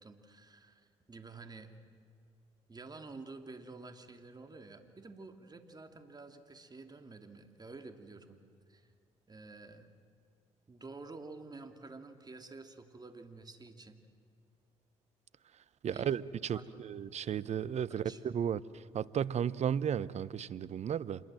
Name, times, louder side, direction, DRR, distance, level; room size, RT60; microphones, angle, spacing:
voice 1, 0.0-1.7 2.7-8.4 8.7-8.9 9.3-9.9 10.7-14.0 15.9-16.1 16.5-16.8 17.9-18.2, right 3 dB, 30° right, 6 dB, 2.8 m, -50 dB
voice 2, 15.8-16.6 16.9-18.6 18.9-21.2, right 8 dB, 55° right, 18 dB, 0.9 m, -34 dB
27.0 x 21.5 x 7.7 m, 2.2 s
hypercardioid pair, 55°, 14 cm